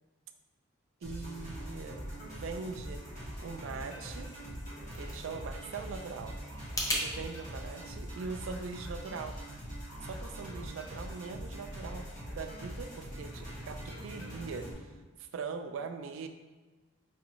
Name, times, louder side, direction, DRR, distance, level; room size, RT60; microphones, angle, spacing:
sound 1, 1.0-14.7, equal, 40° left, 1.2 m, -43 dB
voice 1, 1.0-3.0 3.4-4.3 5.0-6.4 6.9-9.4 10.0-12.1 12.4-16.3, right 4 dB, 80° right, 7 dB, 0.3 m, -41 dB
sound 2, 4.4-7.1, left 1 dB, 15° left, 0.5 m, -38 dB
4.7 x 2.5 x 3.0 m, 1.2 s
head